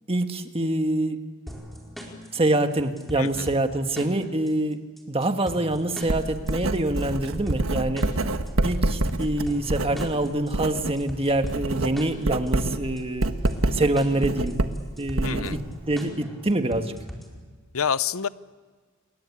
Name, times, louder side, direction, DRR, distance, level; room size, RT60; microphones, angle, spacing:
voice 1, 0.1-1.2 2.3-4.8 5.1-8.1 8.6-13.3 13.7-14.5 15.0-15.6 15.9-16.9, right 2 dB, 30° right, 7 dB, 1.6 m, -25 dB
sound 1, 1.5-17.5, equal, ahead, 4.6 m, -41 dB
voice 2, 3.2-3.5 15.2-15.6 17.7-18.3, left 7 dB, 75° left, 16 dB, 0.7 m, -27 dB
Writing, 6.0-11.0 11.3-15.9, right 2 dB, 70° right, 1.4 m, -27 dB
29.0 x 22.0 x 8.5 m, 1.5 s
head